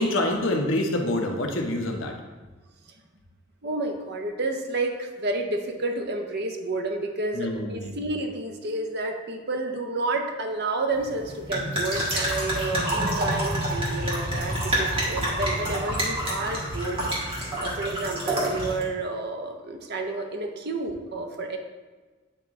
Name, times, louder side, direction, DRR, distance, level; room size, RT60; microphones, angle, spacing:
voice 1, 0.0-2.1 7.3-8.1, left 1 dB, 70° left, 2 dB, 0.9 m, -26 dB
voice 2, 3.6-17.0 17.6-21.6, right 2 dB, 50° right, 4 dB, 0.7 m, -30 dB
sound 1, 10.9-18.8, right 1 dB, 30° right, 1.5 m, -28 dB
8.9 x 3.0 x 3.6 m, 1.3 s
head